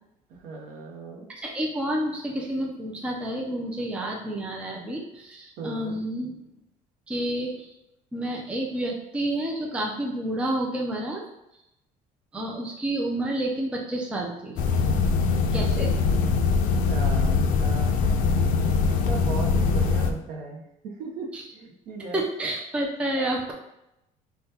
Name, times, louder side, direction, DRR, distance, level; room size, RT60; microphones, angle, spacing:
voice 1, 0.3-1.3 5.6-6.0 16.9-18.0 18.9-22.3 23.1-23.3, right 4 dB, 60° right, 2 dB, 0.8 m, -37 dB
voice 2, 1.4-6.4 7.1-7.7 8.1-11.2 12.3-14.6 15.5-16.0 21.3-21.4 22.1-23.5, right 1 dB, 5° right, -1 dB, 0.4 m, -29 dB
sound 1, 14.6-20.1, left 4 dB, 55° left, 0.4 m, -22 dB
5.4 x 2.2 x 2.8 m, 0.85 s
cardioid pair, 160°, 16 cm